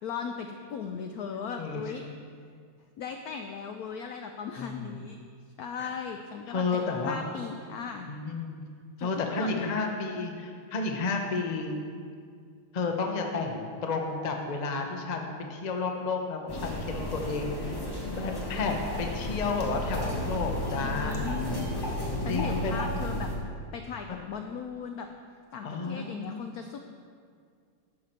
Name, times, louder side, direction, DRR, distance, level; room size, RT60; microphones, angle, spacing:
voice 1, 0.0-2.0 3.0-5.2 5.6-8.1 9.0-9.1 9.4-9.9 20.8-21.7 22.2-23.3 23.7-25.1 25.5-26.8, left 6 dB, 90° left, 5 dB, 0.8 m, -37 dB
voice 2, 6.5-7.2 8.1-8.6 9.0-11.8 12.7-17.8 18.1-21.4 22.3-22.8 25.6-26.4, left 4 dB, 70° left, 2 dB, 0.4 m, -31 dB
sound 1, 16.5-23.4, left 1 dB, 20° left, 0.7 m, -33 dB
11.5 x 6.8 x 4.4 m, 2.2 s
omnidirectional pair, 2.2 m